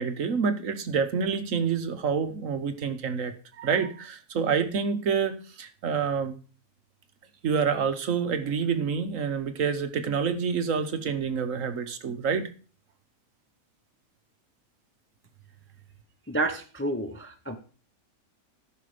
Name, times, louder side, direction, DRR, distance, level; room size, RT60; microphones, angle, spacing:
voice 1, 0.0-6.3 7.4-12.5, right 6 dB, 60° right, 9 dB, 1.3 m, -27 dB
voice 2, 16.3-17.6, right 2 dB, 15° left, 6 dB, 0.5 m, -30 dB
14.0 x 5.9 x 5.0 m, 0.38 s
omnidirectional pair, 1.6 m